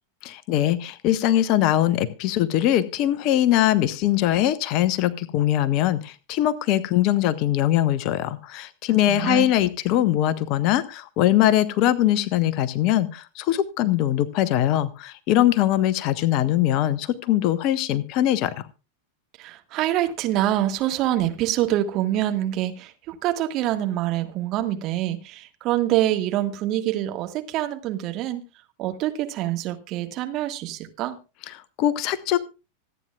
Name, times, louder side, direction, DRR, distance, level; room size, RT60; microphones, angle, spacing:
voice 1, 0.2-18.7 31.5-32.4, left 13 dB, 40° left, 0.9 m, -22 dB
voice 2, 9.1-9.5 19.4-28.4 28.8-31.2, right 13 dB, 35° right, 1.7 m, -25 dB
25.5 x 9.1 x 2.4 m
figure-of-eight pair, 90°, 0 cm